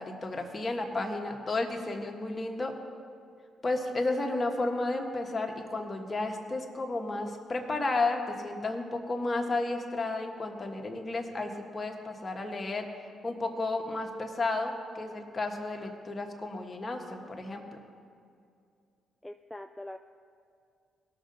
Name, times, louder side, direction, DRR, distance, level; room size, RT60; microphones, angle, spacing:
voice 1, 0.0-2.7 3.6-12.9 13.2-17.6, left 2 dB, 30° left, 2 dB, 1.5 m, -32 dB
voice 2, 19.2-20.0, left 1 dB, 5° left, 5 dB, 0.4 m, -42 dB
17.5 x 6.6 x 4.0 m, 2.4 s
supercardioid pair, 65°, 0 cm